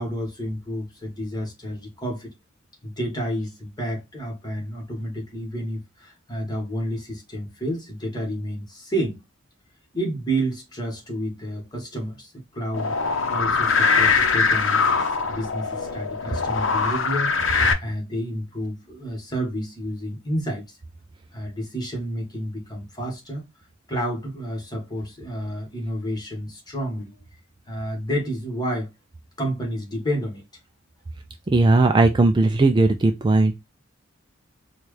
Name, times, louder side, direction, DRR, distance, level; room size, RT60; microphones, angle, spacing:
voice 1, 0.0-2.3 2.8-9.2 9.9-20.8 21.3-23.4 23.9-27.2 27.7-28.9 29.4-30.4, equal, 20° left, 1.4 m, -30 dB
sound 1, 12.7-17.7, left 5 dB, 65° left, 0.7 m, -22 dB
voice 2, 31.5-33.5, right 2 dB, 25° right, 0.3 m, -17 dB
4.3 x 2.4 x 3.1 m
head